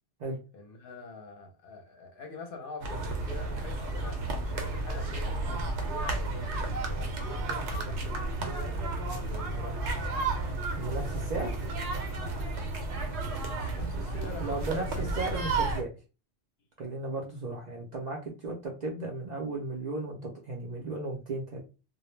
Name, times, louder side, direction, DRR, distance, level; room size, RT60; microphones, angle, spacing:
voice 1, 0.5-9.9 13.3-15.3, left 2 dB, 60° left, 0.7 m, -45 dB
sound 1, 2.8-15.8, right 2 dB, 75° right, 0.9 m, -32 dB
voice 2, 10.8-11.5 14.4-15.9 16.8-21.6, right 3 dB, 55° right, 0.5 m, -35 dB
2.1 x 2.0 x 3.0 m
omnidirectional pair, 1.2 m